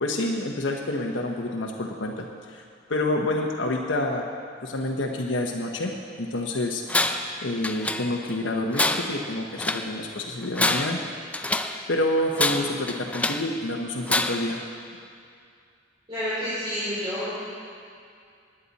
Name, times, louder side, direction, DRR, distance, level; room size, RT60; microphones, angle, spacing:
voice 1, 0.0-2.6 2.9-4.3 4.6-5.9 6.2-6.8 7.4-11.0 11.9-14.6, left 1 dB, 75° left, 1 dB, 1.0 m, -28 dB
Tools, 6.9-7.3 7.6-8.3 8.7-9.9 10.4-11.8 12.3-13.5 14.1-14.6, left 2 dB, 5° left, 0.5 m, -26 dB
voice 2, 16.1-17.3, equal, 25° right, -12 dB, 3.9 m, -29 dB
18.5 x 10.0 x 4.2 m, 2.3 s
head